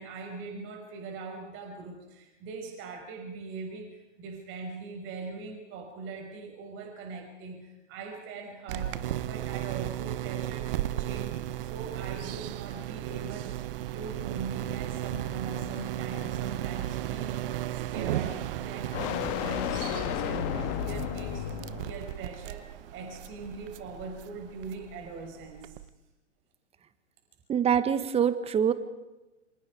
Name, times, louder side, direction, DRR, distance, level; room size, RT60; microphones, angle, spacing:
voice 1, 0.0-13.7 13.9-25.8, right 4 dB, 35° right, 3 dB, 6.2 m, -42 dB
sound 1, 8.7-25.9, right 13 dB, 50° right, 1.1 m, -35 dB
sound 2, 15.1-22.1, left 12 dB, 35° left, 1.6 m, -35 dB
voice 2, 27.5-28.7, right 8 dB, 15° right, 13 dB, 1.5 m, -24 dB
28.5 x 26.5 x 4.9 m, 1.0 s
figure-of-eight pair, 115°, 36 cm